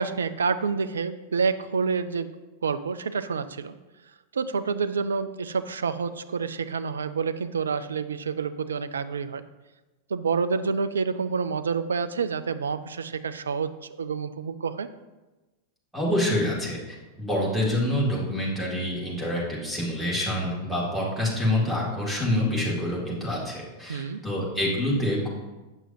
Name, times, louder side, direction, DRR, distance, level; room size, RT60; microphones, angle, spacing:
voice 1, 0.0-2.3 2.6-3.7 4.3-9.4 10.1-14.9 23.9-24.2, right 5 dB, 70° right, 11 dB, 0.3 m, -28 dB
voice 2, 15.9-16.8 17.2-25.3, left 1 dB, ahead, -6 dB, 2.0 m, -26 dB
8.0 x 6.1 x 2.6 m, 1.1 s
figure-of-eight pair, 90°, 0 cm